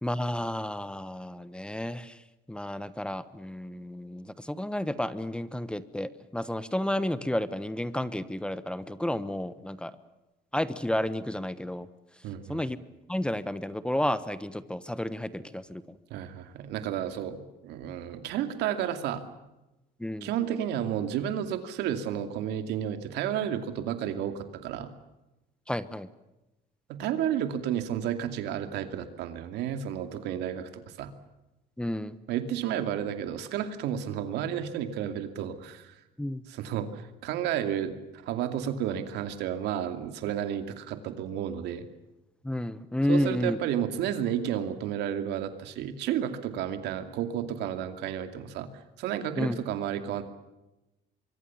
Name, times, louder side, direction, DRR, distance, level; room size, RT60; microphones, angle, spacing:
voice 1, 0.0-2.2 2.5-9.9 10.5-11.9 12.5-12.8 13.1-16.0 20.0-20.3 25.7-26.1 31.8-32.2 36.2-36.4 42.4-43.6 49.4-49.6, left 1 dB, 5° left, 14 dB, 1.1 m, -31 dB
voice 2, 12.2-12.6 16.1-19.3 20.2-24.9 26.9-31.1 32.3-36.0 36.5-41.9 43.1-48.7 49.0-50.2, right 10 dB, 85° right, 8 dB, 2.5 m, -32 dB
25.0 x 23.5 x 7.2 m, 0.98 s
cardioid pair, 110°, 17 cm